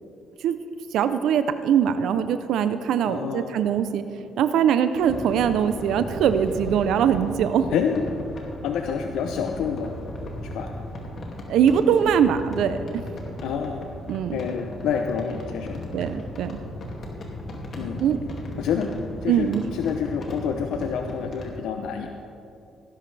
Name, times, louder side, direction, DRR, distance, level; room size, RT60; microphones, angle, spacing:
voice 1, 0.9-4.0 4.4-7.7 11.5-13.0 14.1-14.4 15.9-16.6 18.0-18.2 19.3-19.6, right 8 dB, 80° right, 11 dB, 0.5 m, -22 dB
voice 2, 3.1-3.6 7.7-8.1 8.6-9.9 10.5-10.7 13.4-13.9 14.3-15.8 17.8-18.0 18.6-22.1, left 7 dB, 85° left, 4 dB, 0.7 m, -28 dB
sound 1, 4.9-21.6, left 1 dB, 55° left, 2.3 m, -36 dB
18.0 x 11.0 x 3.4 m, 2.6 s
cardioid pair, 90°, 0 cm